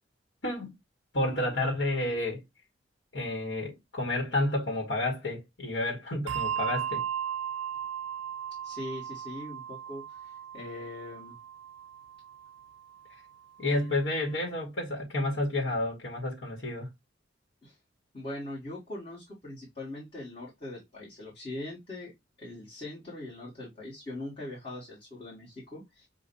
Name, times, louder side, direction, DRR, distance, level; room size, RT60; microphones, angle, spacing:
voice 1, 0.4-0.7 1.1-2.4 3.1-7.0 13.6-16.9, left 1 dB, 70° left, 1.5 m, -30 dB
Bell, 6.3-13.1, right 9 dB, 75° right, 0.4 m, -36 dB
voice 2, 8.6-11.4 17.6-17.8 18.1-22.1 22.4-26.1, left 1 dB, 30° left, 2.0 m, -41 dB
6.5 x 2.5 x 2.6 m
head